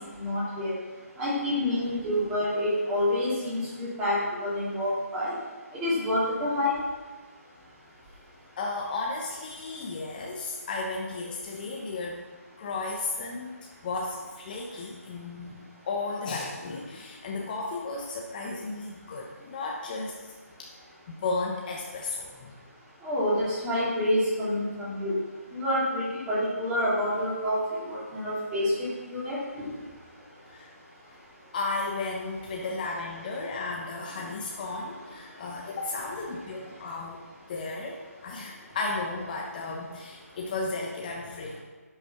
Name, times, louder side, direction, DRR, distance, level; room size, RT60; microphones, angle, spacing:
voice 1, 0.2-0.7 1.2-5.3 5.8-6.7 23.0-25.1 25.5-29.7, left 1 dB, 10° right, -9 dB, 3.2 m, -28 dB
voice 2, 8.6-12.2 12.6-13.6 13.8-20.3 20.6-20.7 21.1-22.5 30.5-30.7 31.1-31.2 31.5-41.6, left 3 dB, 30° left, -1 dB, 1.1 m, -34 dB
11.0 x 6.1 x 5.9 m, 1.4 s
figure-of-eight pair, 150°, 9 cm